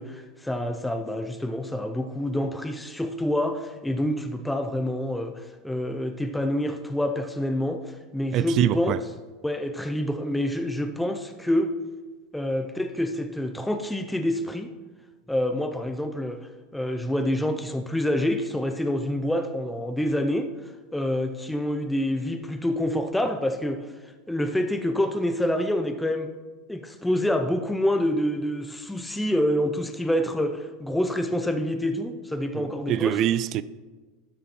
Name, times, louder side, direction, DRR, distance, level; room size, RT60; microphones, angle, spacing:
voice 1, 0.0-8.9 9.4-11.7 12.3-14.7 15.3-16.4 16.7-20.5 20.9-23.9 24.3-26.3 26.7-33.2, left 1 dB, 5° left, 0.6 m, -27 dB
voice 2, 8.3-9.0 32.5-33.6, right 11 dB, 50° right, 0.3 m, -24 dB
12.0 x 5.2 x 4.4 m
hypercardioid pair, 100°, 0 cm